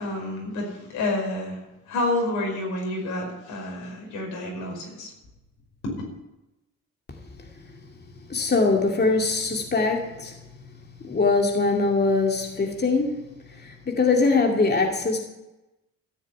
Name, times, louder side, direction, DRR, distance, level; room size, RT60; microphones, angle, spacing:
voice 1, 0.0-1.6 1.9-5.1 5.8-5.9, left 2 dB, 85° left, 0 dB, 5.3 m, -29 dB
voice 2, 8.3-10.4 11.0-15.2, left 3 dB, 35° left, 1 dB, 2.4 m, -23 dB
14.0 x 7.2 x 8.6 m, 0.98 s
cardioid pair, 90°, 30 cm